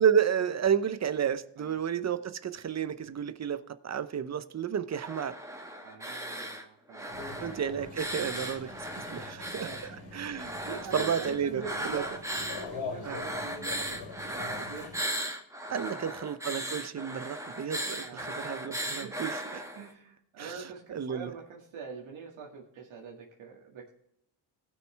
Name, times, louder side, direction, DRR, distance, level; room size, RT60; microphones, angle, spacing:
voice 1, 0.0-5.3 7.4-8.7 9.0-9.7 10.1-10.6 10.9-11.6 11.9-12.0 13.1-13.2 15.7-19.3 20.4-21.3, right 8 dB, 35° right, 0.7 m, -31 dB
sound 1, 4.9-6.6 6.9-9.9 10.3-12.7 13.0-19.9, right 1 dB, 5° right, 1.3 m, -37 dB
voice 2, 5.8-7.4 9.5-10.1 10.4-14.9 15.7-16.0 18.0-18.4 19.0-19.1 19.5-23.9, right 5 dB, 80° right, 2.2 m, -45 dB
sound 2, 7.1-15.0, left 4 dB, 80° left, 2.9 m, -43 dB
18.0 x 6.3 x 3.3 m
cardioid pair, 95°, 46 cm